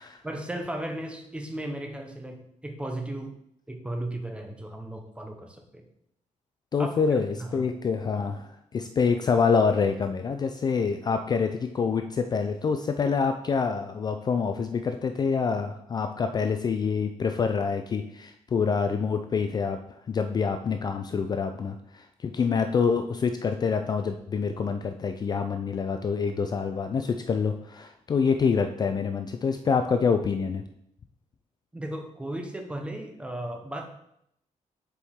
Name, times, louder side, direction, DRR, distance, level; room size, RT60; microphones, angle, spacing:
voice 1, 0.2-3.3 3.7-5.9 6.8-7.0 7.4-7.7 31.7-33.8, right 1 dB, 10° right, 4 dB, 0.7 m, -35 dB
voice 2, 6.7-19.8 20.1-30.6, left 5 dB, 30° left, 7 dB, 0.3 m, -26 dB
6.8 x 4.6 x 3.6 m, 0.74 s
wide cardioid pair, 155°, 13 cm